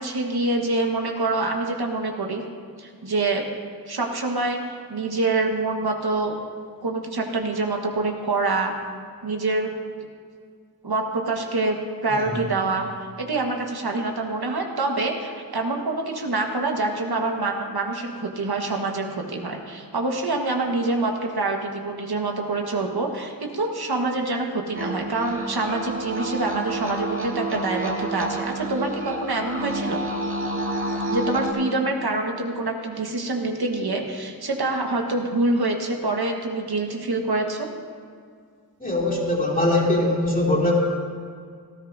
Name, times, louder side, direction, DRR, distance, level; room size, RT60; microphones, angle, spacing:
voice 1, 0.0-2.4 2.8-3.5 3.9-4.6 4.9-6.3 6.8-8.7 9.2-9.7 10.8-11.8 12.0-30.0 31.1-37.7, right 2 dB, 75° right, 2 dB, 1.5 m, -26 dB
voice 2, 12.1-12.4 38.8-40.7, left 1 dB, 20° left, -4 dB, 2.9 m, -22 dB
sound 1, 24.7-31.5, right 2 dB, 35° right, 2.0 m, -29 dB
18.5 x 13.5 x 2.7 m, 2.1 s
wide cardioid pair, 65°, 38 cm